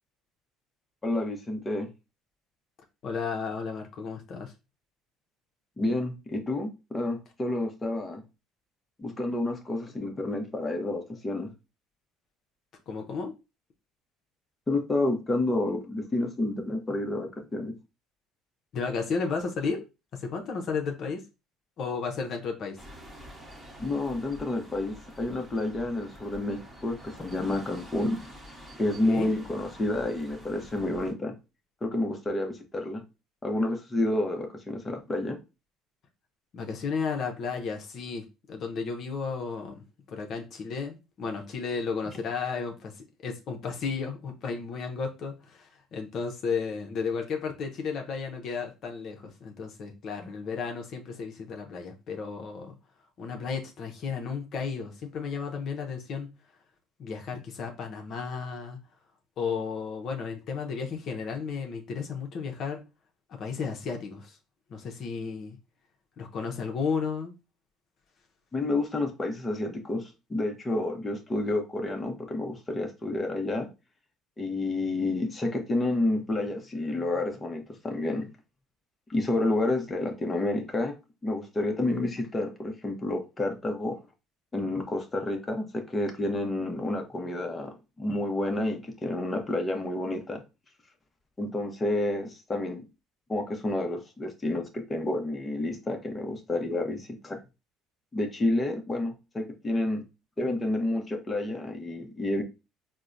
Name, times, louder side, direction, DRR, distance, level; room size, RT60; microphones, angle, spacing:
voice 1, 1.0-1.9 5.8-8.2 9.0-11.5 14.7-17.7 23.8-28.2 28.8-31.3 31.8-33.0 33.4-35.4 68.5-73.7 74.4-78.3 79.1-80.9 81.2-84.0 84.5-90.4 91.4-92.8 93.3-97.4 98.1-100.0 100.4-102.4, left 2 dB, 20° left, 0.7 m, -29 dB
voice 2, 3.0-4.5 12.9-13.3 18.7-19.9 20.1-21.2 21.8-22.8 28.9-29.3 36.5-52.7 53.2-56.3 57.0-58.8 59.4-62.8 63.4-64.4 64.7-65.6 66.2-67.3, left 5 dB, 55° left, 0.7 m, -33 dB
sound 1, 22.8-31.1, equal, 10° right, 1.1 m, -47 dB
4.3 x 2.1 x 2.5 m
supercardioid pair, 90°, 0 cm